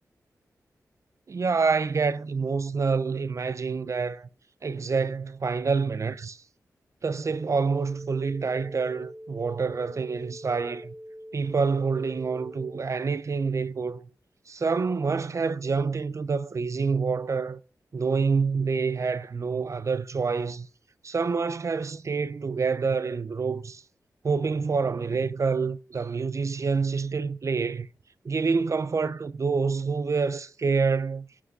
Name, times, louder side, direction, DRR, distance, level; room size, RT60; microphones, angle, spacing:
voice 1, 1.3-4.3 4.6-6.4 7.0-10.9 11.3-14.1 14.5-17.6 17.9-20.7 21.0-23.8 24.2-27.9 28.2-31.3, right 5 dB, 50° right, 0.7 m, -27 dB
sound 1, 7.2-12.8, equal, 90° left, 4.1 m, -44 dB
11.0 x 5.9 x 5.5 m
cardioid pair, 65°, 6 cm